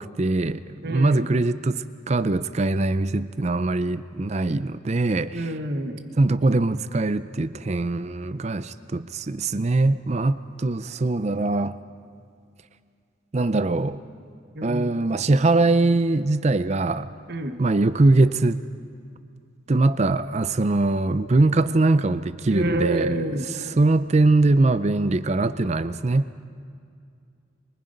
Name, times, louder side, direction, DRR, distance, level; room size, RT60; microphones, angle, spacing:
voice 1, 0.0-5.5 6.2-11.8 13.3-14.0 14.6-17.1 17.6-18.6 19.7-26.3, right 2 dB, 35° right, 13 dB, 0.5 m, -22 dB
voice 2, 0.8-1.3 5.3-6.0 14.5-14.9 17.3-17.6 22.5-23.5, right 1 dB, 50° right, 6 dB, 1.3 m, -28 dB
24.5 x 23.0 x 5.3 m, 2.3 s
head